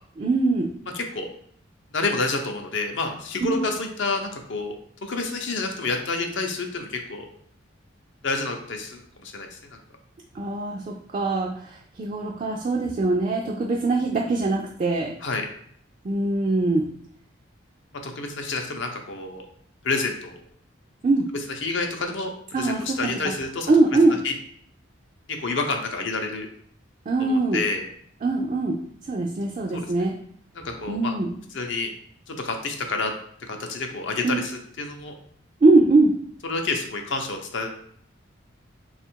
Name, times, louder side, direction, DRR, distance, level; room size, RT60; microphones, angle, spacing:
voice 1, 0.2-0.7 3.4-3.6 10.3-15.1 16.0-16.9 21.0-21.3 22.5-23.1 23.7-24.2 27.1-27.6 28.2-28.8 29.1-30.1 30.9-31.3 34.2-34.4 35.6-36.2, right 2 dB, 35° right, 0 dB, 0.3 m, -22 dB
voice 2, 0.9-1.3 1.9-4.7 5.0-7.3 8.2-9.6 15.2-15.5 18.0-19.4 19.8-20.4 21.6-23.7 24.2-24.3 25.4-26.5 27.2-27.8 29.7-29.9 30.5-31.2 31.5-31.9 32.3-33.1 33.5-35.1 36.4-37.7, left 3 dB, 65° left, 4 dB, 0.6 m, -29 dB
3.3 x 2.4 x 4.4 m, 0.62 s
head